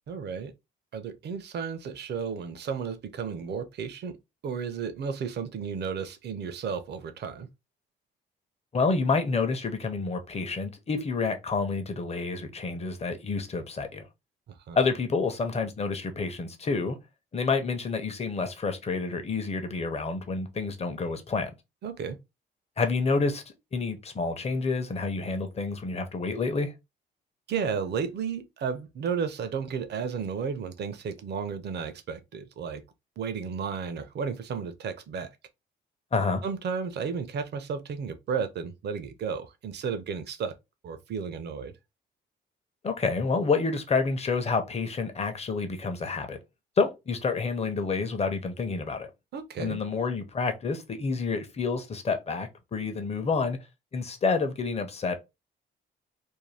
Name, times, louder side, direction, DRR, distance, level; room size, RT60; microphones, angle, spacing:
voice 1, 0.1-0.5 0.9-4.2 4.4-7.5 14.5-14.8 21.8-22.2 27.5-32.8 33.2-35.3 36.4-40.5 40.8-41.7 49.3-49.8, right 6 dB, 55° right, 0.6 m, -33 dB
voice 2, 8.7-14.0 14.7-17.0 17.3-21.5 22.8-23.4 23.7-26.7 36.1-36.4 42.8-46.4 46.8-49.1 49.6-53.6 53.9-55.1, left 4 dB, 30° left, 0.7 m, -28 dB
2.6 x 2.2 x 3.2 m
cardioid pair, 90°, 20 cm